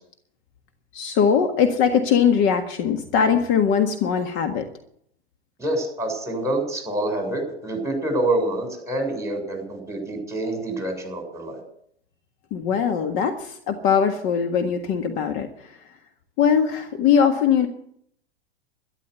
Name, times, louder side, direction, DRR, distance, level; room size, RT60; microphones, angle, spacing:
voice 1, 0.9-4.7 12.5-15.8 16.4-17.7, left 7 dB, 40° left, 6 dB, 1.7 m, -21 dB
voice 2, 5.6-11.6, right 1 dB, 10° right, 2 dB, 7.0 m, -26 dB
13.0 x 11.5 x 8.2 m, 0.69 s
figure-of-eight pair, 95°, 31 cm